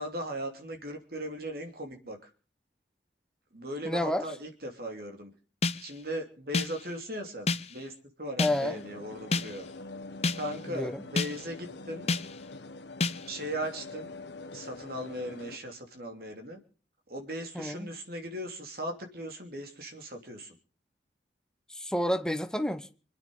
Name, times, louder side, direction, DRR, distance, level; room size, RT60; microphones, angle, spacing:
voice 1, 0.0-2.3 3.5-5.3 5.8-9.7 10.4-12.1 13.3-14.1 14.5-16.6 17.1-20.6, right 1 dB, 55° right, 2.9 m, -38 dB
voice 2, 3.8-4.3 8.4-8.8 10.7-11.0 17.5-17.9 21.7-22.9, left 1 dB, 5° left, 0.9 m, -30 dB
sound 1, 5.6-6.0 6.5-6.9 7.5-7.8 8.4-8.7 9.3-9.7 10.2-10.6 11.2-11.5 12.1-12.4 13.0-13.4, left 3 dB, 35° left, 0.7 m, -30 dB
sound 2, 8.4-15.6, left 3 dB, 70° left, 1.2 m, -45 dB
26.0 x 9.7 x 5.5 m
head